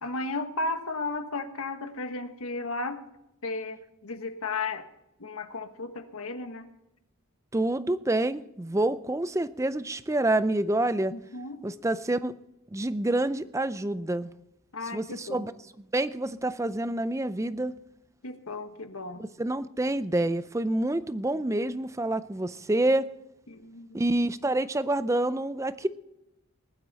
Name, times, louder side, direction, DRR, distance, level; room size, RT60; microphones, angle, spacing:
voice 1, 0.0-3.0 3.4-4.9 5.2-6.7 11.1-11.6 14.7-15.5 18.2-19.3 23.5-24.1, left 3 dB, 85° left, 8 dB, 1.4 m, -34 dB
voice 2, 7.5-11.1 11.6-12.3 12.7-14.3 14.9-15.5 15.9-17.8 19.2-23.1 23.9-25.9, right 1 dB, 15° right, 14 dB, 0.5 m, -27 dB
19.5 x 11.5 x 4.1 m, 0.87 s
head